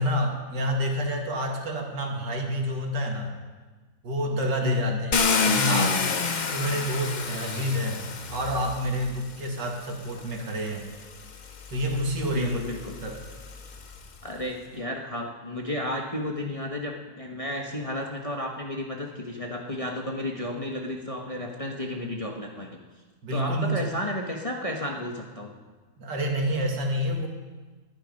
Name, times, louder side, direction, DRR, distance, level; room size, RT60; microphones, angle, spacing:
voice 1, 0.0-3.3 4.0-5.1 5.4-6.1 6.5-8.0 8.3-10.9 11.7-12.6 13.0-13.2 23.2-23.9 26.0-27.3, equal, 85° right, 1 dB, 2.6 m, -28 dB
voice 2, 4.6-5.0 12.3-12.9 14.2-22.7 23.3-25.5, left 1 dB, 20° left, 0 dB, 1.2 m, -32 dB
Car, 5.1-9.2 10.2-10.3 10.8-14.1, left 5 dB, 50° left, 0.5 m, -28 dB
20.0 x 10.0 x 5.3 m, 1.3 s
omnidirectional pair, 1.9 m